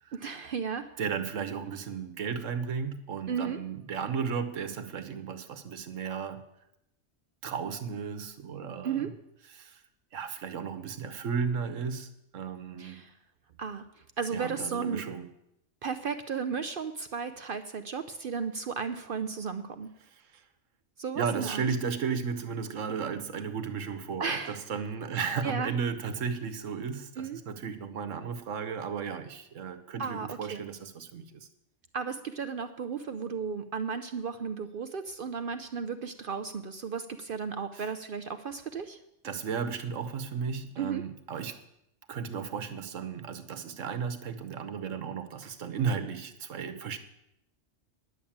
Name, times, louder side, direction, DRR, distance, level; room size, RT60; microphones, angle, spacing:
voice 1, 0.1-0.9 3.3-3.6 8.8-9.1 12.8-13.1 13.6-13.9 14.2-15.0 15.8-19.9 21.0-21.6 24.2-24.6 25.1-25.7 27.2-27.4 30.0-30.6 31.9-39.0 40.8-41.0, right 6 dB, 55° right, 9 dB, 0.7 m, -34 dB
voice 2, 1.0-6.4 7.4-9.1 9.5-9.8 10.1-13.0 14.3-15.3 21.2-31.5 39.2-41.6 42.1-47.0, right 6 dB, 90° right, 10 dB, 1.4 m, -34 dB
10.5 x 7.4 x 8.6 m, 0.81 s
omnidirectional pair, 1.3 m